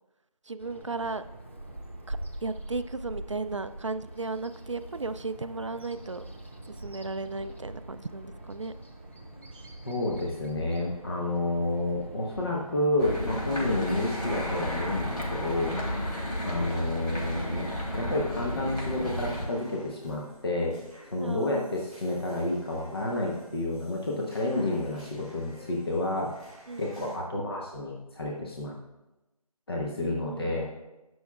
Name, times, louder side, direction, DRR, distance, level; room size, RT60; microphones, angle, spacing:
voice 1, 0.4-1.2 2.1-6.3 6.7-8.7 21.2-21.7 26.7-27.2 30.0-30.6, right 3 dB, 50° right, 11 dB, 0.4 m, -35 dB
Bird vocalization bird call bird song, 0.6-17.0, right 1 dB, 20° left, 0.5 m, -44 dB
voice 2, 9.8-15.8 16.4-20.8 21.1-26.3 26.8-28.7 29.7-30.7, left 2 dB, 40° left, -2 dB, 1.0 m, -30 dB
sound 1, 13.0-19.5, left 1 dB, 90° left, 3.1 m, -32 dB
sound 2, 18.9-27.2, left 1 dB, ahead, 2.7 m, -53 dB
14.5 x 6.2 x 2.4 m, 1.0 s
figure-of-eight pair, 175°, 19 cm